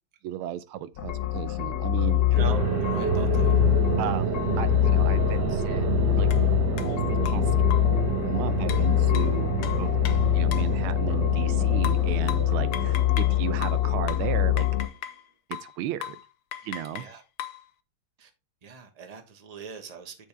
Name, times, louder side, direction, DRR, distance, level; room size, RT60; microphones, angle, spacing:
voice 1, 0.2-2.3 4.0-6.3 6.9-7.4 8.2-9.5 9.8-9.9 10.3-14.7 15.6-16.2 16.6-17.1, right 12 dB, 80° right, 1.5 m, -35 dB
sound 1, 1.0-14.9, left 14 dB, 55° left, 1.1 m, -24 dB
voice 2, 2.3-3.5 16.9-17.2 18.2-18.3 18.6-20.3, right 6 dB, 25° right, 1.1 m, -41 dB
sound 2, 2.4-14.4, right 9 dB, 60° right, 1.3 m, -30 dB
sound 3, 6.3-6.4 6.8-6.9 7.3-8.0 8.7-10.8 11.8-13.4 13.6-15.2 15.5-15.8 16.0-16.3 16.5-17.6, left 11 dB, 80° left, 1.7 m, -38 dB
8.3 x 6.4 x 3.4 m
omnidirectional pair, 2.4 m